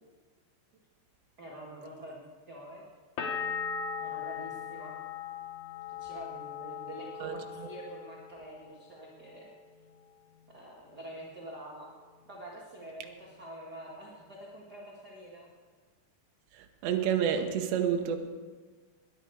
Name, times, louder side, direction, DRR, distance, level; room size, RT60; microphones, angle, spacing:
voice 1, 1.4-2.9 4.0-5.0 5.9-9.5 10.5-11.9 12.3-15.5, right 1 dB, 50° right, -4 dB, 1.1 m, -46 dB
sound 1, 3.2-8.8 9.1-9.9, left 6 dB, 85° left, 1.6 m, -39 dB
voice 2, 16.8-18.2, right 8 dB, 80° right, 5 dB, 3.2 m, -28 dB
19.5 x 10.5 x 4.7 m, 1.4 s
omnidirectional pair, 5.0 m